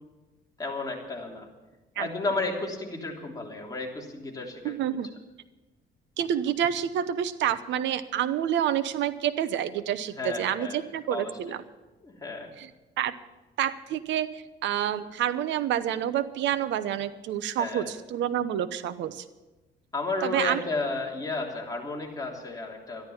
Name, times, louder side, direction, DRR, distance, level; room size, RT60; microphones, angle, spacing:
voice 1, 0.6-1.5 1.9-5.0 10.1-10.8 11.1-11.6 12.0-12.5 17.6-17.9 19.9-23.1, left 3 dB, 20° left, -1 dB, 3.3 m, -33 dB
voice 2, 4.6-5.1 6.2-11.6 12.6-12.7 13.0-13.1 13.6-19.2 20.2-20.6, right 10 dB, 80° right, 13 dB, 0.9 m, -28 dB
13.5 x 11.5 x 7.1 m, 1.1 s
cardioid pair, 105°, 19 cm